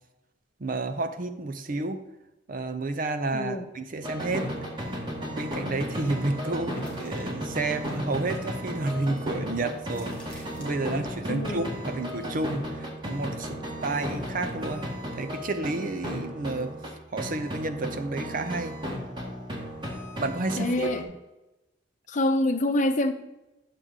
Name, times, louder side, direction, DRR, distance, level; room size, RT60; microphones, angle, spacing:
voice 1, 0.6-2.0 2.5-4.5 5.3-14.8 15.1-16.8 17.1-18.8 20.2-21.0, right 2 dB, 45° right, 0.6 m, -31 dB
voice 2, 3.3-3.7 11.3-11.8 20.6-21.1 22.1-23.1, left 1 dB, 40° left, 0.8 m, -26 dB
sound 1, 4.0-16.9 17.2-21.0, equal, 25° right, 1.6 m, -35 dB
sound 2, 6.7-11.2 11.5-13.1 13.4-14.4, left 1 dB, 5° left, 2.5 m, -48 dB
10.5 x 6.7 x 3.7 m
head